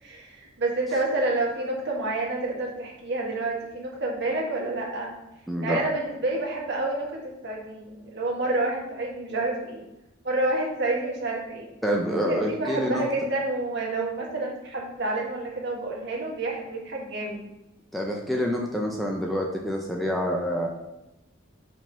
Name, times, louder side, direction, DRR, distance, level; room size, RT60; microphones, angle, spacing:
voice 1, 0.0-5.1 5.6-9.8 10.2-11.7 12.3-17.4, right 2 dB, 60° right, -2 dB, 1.6 m, -29 dB
voice 2, 5.5-5.8 11.8-13.0 17.9-20.7, equal, ahead, -1 dB, 0.6 m, -27 dB
5.0 x 3.8 x 5.2 m, 0.96 s
head